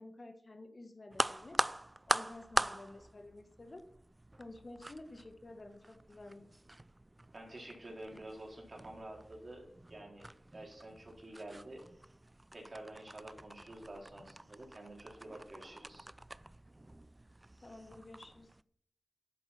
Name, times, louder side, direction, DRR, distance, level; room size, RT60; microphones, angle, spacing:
voice 1, 0.0-1.6 2.1-3.8 4.4-6.5 17.6-18.5, left 2 dB, 50° left, 7 dB, 1.5 m, -51 dB
sound 1, 1.1-18.6, right 1 dB, 25° right, 0.4 m, -42 dB
voice 2, 7.3-11.8 12.5-16.1, right 1 dB, 50° right, 0 dB, 3.9 m, -49 dB
11.0 x 7.7 x 6.0 m, 0.67 s
cardioid pair, 45°, 0 cm